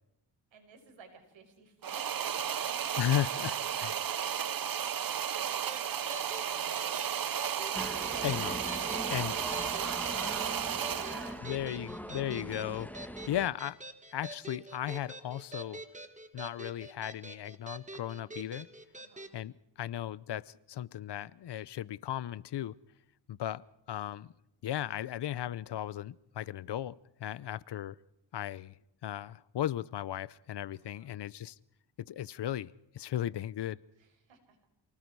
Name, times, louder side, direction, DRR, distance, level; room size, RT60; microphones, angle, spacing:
voice 1, 0.5-5.1 5.4-6.1 6.4-7.6 9.1-12.3 13.1-13.4 18.9-19.3 30.8-31.1 34.0-34.6, right 5 dB, 80° right, 4 dB, 5.6 m, -55 dB
sound 1, 1.8-11.4, right 9 dB, 50° right, 1.0 m, -34 dB
voice 2, 3.0-3.5 3.8-3.9 8.2-8.6 9.1-9.3 11.4-13.8 14.1-15.8 16.3-18.7 19.3-22.8 23.3-24.3 24.6-26.9 27.2-28.0 28.3-28.7 29.0-31.6 32.1-33.8, left 12 dB, 65° left, 21 dB, 0.8 m, -36 dB
sound 2, 5.7-19.4, right 1 dB, 15° right, 1.9 m, -47 dB
sound 3, 7.7-13.5, equal, 5° left, 1.4 m, -42 dB
28.5 x 19.0 x 4.7 m, 0.84 s
cardioid pair, 90°, 45 cm